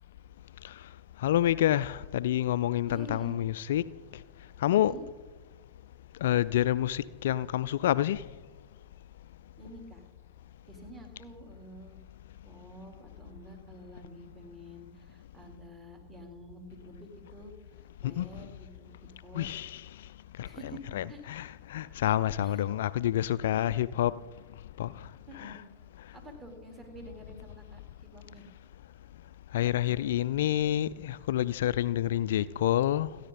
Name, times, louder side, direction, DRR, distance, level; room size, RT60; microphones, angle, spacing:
voice 1, 1.2-3.9 4.6-4.9 6.2-8.2 18.0-18.3 19.3-19.8 20.4-20.5 20.9-24.2 24.8-25.1 25.4-25.6 29.5-33.2, left 12 dB, 60° left, 0.3 m, -28 dB
voice 2, 2.9-3.4 4.7-5.0 9.6-10.0 10.7-12.0 12.4-17.5 18.0-19.5 20.4-21.2 22.4-22.6 25.3-25.6 26.1-28.5, right 1 dB, 20° right, 4.0 m, -48 dB
29.0 x 10.5 x 4.1 m
figure-of-eight pair, 90°, 0 cm